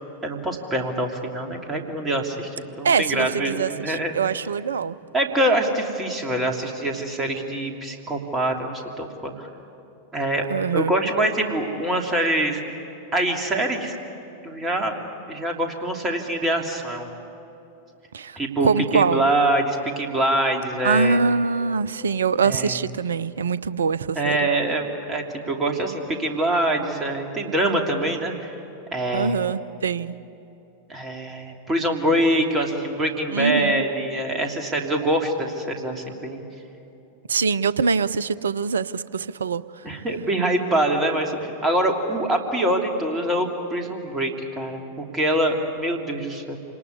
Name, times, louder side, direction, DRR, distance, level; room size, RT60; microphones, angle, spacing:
voice 1, 0.2-4.1 5.1-9.5 10.1-10.5 10.7-12.6 13.1-13.9 14.4-14.9 15.3-17.1 18.4-21.2 22.4-22.8 24.1-28.5 28.9-29.4 30.9-36.4 39.8-46.6, right 1 dB, 20° right, 2 dB, 3.0 m, -24 dB
voice 2, 2.8-5.0 10.5-10.9 18.1-18.4 18.6-19.3 20.8-24.5 29.1-30.2 33.3-33.8 37.3-39.6, right 5 dB, 70° right, 18 dB, 0.6 m, -23 dB
27.5 x 19.5 x 9.8 m, 2.9 s
figure-of-eight pair, 90°, 0 cm